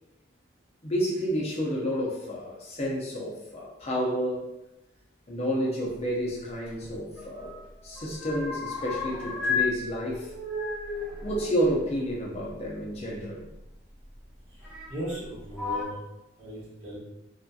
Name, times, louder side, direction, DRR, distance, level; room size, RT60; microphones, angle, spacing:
voice 1, 0.8-4.5 5.3-7.5 7.8-10.3 11.2-13.5, equal, 30° left, -3 dB, 0.5 m, -30 dB
sound 1, 6.7-7.6 7.9-9.7 10.0-12.5 13.5-13.6 14.6-15.2 15.5-15.8, left 4 dB, 5° right, 0.7 m, -33 dB
voice 2, 14.9-16.0 16.4-17.0, right 1 dB, 30° right, -11 dB, 1.3 m, -37 dB
2.7 x 2.4 x 2.3 m, 0.93 s
head